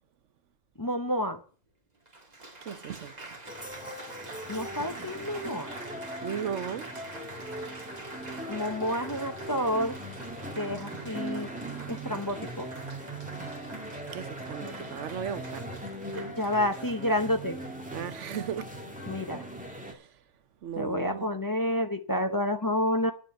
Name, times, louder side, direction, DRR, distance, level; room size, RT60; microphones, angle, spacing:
voice 1, 0.8-1.4 4.5-5.7 8.5-10.0 10.6-11.5 11.9-12.7 16.1-17.6 19.1-19.4 20.8-23.1, left 1 dB, 20° left, 0.8 m, -29 dB
Applause, 1.3-1.4 2.1-18.0 18.7-19.0, right 2 dB, 35° right, 2.0 m, -45 dB
voice 2, 2.6-3.1 6.2-7.0 14.1-15.7 17.9-18.7 19.8-20.1 20.6-21.3, right 8 dB, 75° right, 1.1 m, -36 dB
sound 1, 3.5-19.9, right 1 dB, 5° right, 1.8 m, -40 dB
10.5 x 6.8 x 7.8 m
omnidirectional pair, 1.3 m